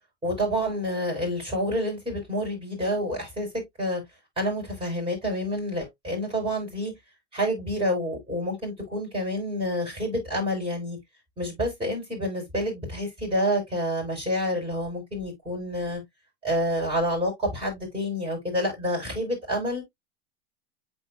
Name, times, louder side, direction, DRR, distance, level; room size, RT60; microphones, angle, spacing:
voice 1, 0.2-3.5 3.8-4.0 4.4-6.9 7.3-11.0 11.4-16.0 16.4-19.8, equal, 15° right, 5.6 m, -28 dB
8.6 x 4.9 x 2.6 m
hypercardioid pair, 105°, 33 cm